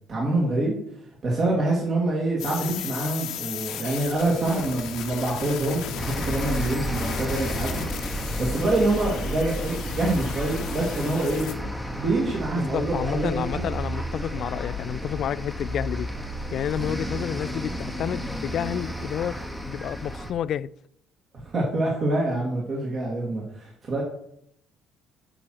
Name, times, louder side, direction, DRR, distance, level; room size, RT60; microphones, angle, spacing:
voice 1, 0.1-0.8 1.2-7.9 8.4-11.5 12.0-13.6 21.3-24.0, right 2 dB, 40° right, 2.2 m, -26 dB
sound 1, 2.4-11.5, left 9 dB, 75° left, 1.2 m, -36 dB
sound 2, 6.0-20.3, equal, 5° right, 1.1 m, -32 dB
voice 2, 12.5-16.1 16.5-19.4 19.7-20.7, left 9 dB, 55° left, 0.3 m, -30 dB
8.9 x 6.2 x 4.6 m
cardioid pair, 115°, 0 cm